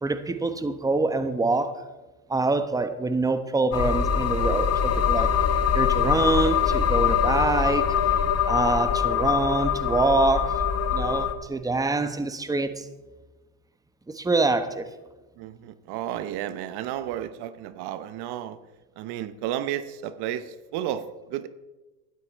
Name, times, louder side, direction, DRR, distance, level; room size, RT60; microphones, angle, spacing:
voice 1, 0.0-1.8 2.3-5.3 5.7-7.9 8.5-10.6 10.9-12.9 14.1-14.9, right 3 dB, 10° right, 10 dB, 1.1 m, -25 dB
sound 1, 3.7-11.3, left 8 dB, 35° left, 1.2 m, -23 dB
voice 2, 15.4-18.6 19.0-21.5, right 11 dB, 65° right, 14 dB, 0.9 m, -32 dB
13.0 x 11.5 x 4.5 m, 1.1 s
supercardioid pair, 100°, 42 cm